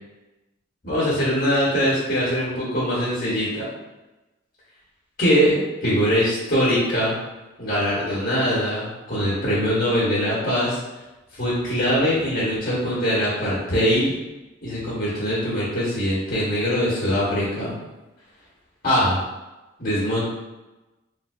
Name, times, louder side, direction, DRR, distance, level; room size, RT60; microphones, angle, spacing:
voice 1, 0.8-3.7 5.2-7.1 7.6-10.8 11.3-14.1 14.6-17.7 18.8-19.2 19.8-20.2, equal, 45° left, -8 dB, 1.0 m, -22 dB
3.6 x 2.6 x 2.4 m, 1.1 s
head